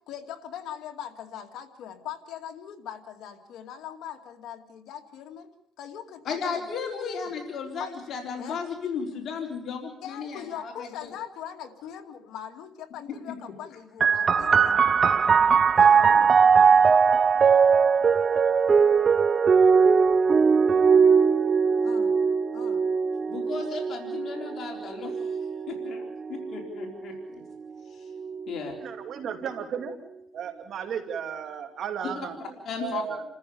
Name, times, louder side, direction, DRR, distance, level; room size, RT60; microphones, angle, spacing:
voice 1, 0.0-5.5 5.8-6.7 7.0-7.1 7.8-8.0 8.4-8.7 10.0-14.8 15.7-16.7 21.8-22.2 22.5-22.9, left 9 dB, 85° left, 5 dB, 2.3 m, -41 dB
voice 2, 6.2-11.1 13.3-13.4 23.3-27.4 27.9-28.1 28.5-28.7 32.4-33.0, left 5 dB, 65° left, 2 dB, 3.9 m, -35 dB
sound 1, 14.0-27.2 28.1-28.9, right 6 dB, 45° right, 0.7 m, -20 dB
voice 3, 28.8-30.0 30.3-33.2, right 7 dB, 70° right, 5 dB, 2.6 m, -34 dB
29.0 x 14.0 x 7.0 m, 0.74 s
cardioid pair, 90°, 0 cm